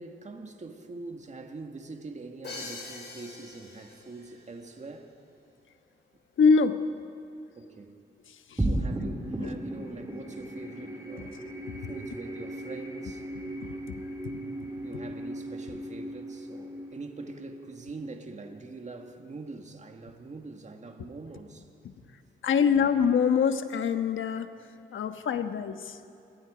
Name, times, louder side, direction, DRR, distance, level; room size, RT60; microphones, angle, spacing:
voice 1, 0.0-5.1 7.6-8.0 8.6-11.5 11.9-13.3 13.5-13.8 14.8-21.7 22.6-22.9, right 3 dB, 35° right, 1.9 m, -44 dB
Crash cymbal, 2.4-4.3, left 3 dB, 55° left, 4.4 m, -42 dB
voice 2, 6.4-6.8 8.5-8.7 9.4-9.5 11.2-11.3 11.7-11.9 13.6-14.4 21.8-21.9 22.4-24.5 24.9-26.0, left 6 dB, 70° left, 1.3 m, -25 dB
sound 1, 8.6-19.2, right 1 dB, 15° right, 4.0 m, -36 dB
28.0 x 22.0 x 5.1 m
cardioid pair, 95°, 21 cm